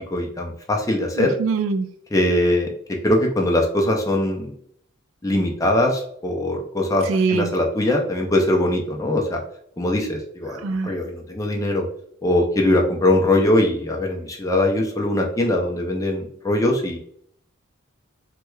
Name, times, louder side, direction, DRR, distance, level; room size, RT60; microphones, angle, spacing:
voice 1, 0.0-1.4 2.1-4.5 5.2-9.4 9.8-11.9 12.2-17.0, left 1 dB, 15° left, 1 dB, 0.4 m, -21 dB
voice 2, 1.2-1.9 7.1-7.5 10.6-10.9, right 4 dB, 80° right, 8 dB, 0.4 m, -22 dB
4.5 x 2.2 x 2.3 m, 0.65 s
head